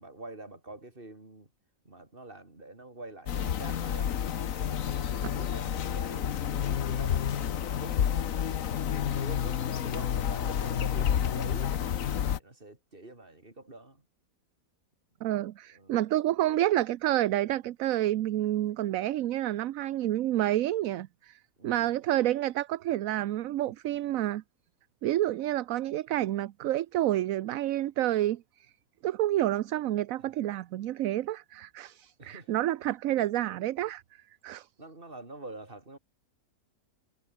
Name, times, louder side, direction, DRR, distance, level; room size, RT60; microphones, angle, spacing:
voice 1, 0.0-1.5 1.8-4.2 4.6-7.2 7.8-8.6 9.1-11.8 12.4-14.1 15.7-16.0 21.6-22.0 32.2-32.6 34.8-36.0, right 2 dB, 35° right, 4.1 m, -46 dB
sound 1, 3.3-12.4, left 9 dB, 70° left, 1.4 m, -30 dB
voice 2, 15.2-21.4 21.6-24.4 25.0-28.4 29.0-34.0 34.4-34.7, right 14 dB, 75° right, 1.0 m, -29 dB
omnidirectional pair, 1.5 m